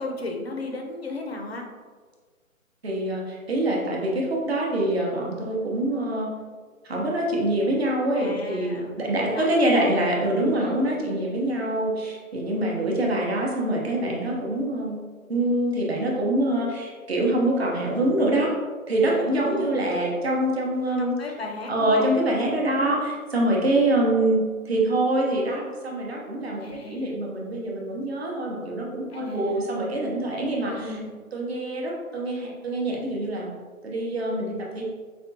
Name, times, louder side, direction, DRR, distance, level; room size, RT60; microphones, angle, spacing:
voice 1, 0.0-1.7 8.1-10.0 10.4-11.1 19.1-20.0 21.0-22.2 22.7-23.0 26.6-27.1 29.1-29.7 30.7-31.1, left 2 dB, 45° left, 2 dB, 0.5 m, -36 dB
voice 2, 2.8-6.3 6.8-15.0 15.3-18.5 18.9-21.1 21.7-30.9 31.3-33.5 33.8-34.8, right 1 dB, 45° right, -2 dB, 0.8 m, -25 dB
5.1 x 2.3 x 2.6 m, 1.5 s
hypercardioid pair, 170°, 43 cm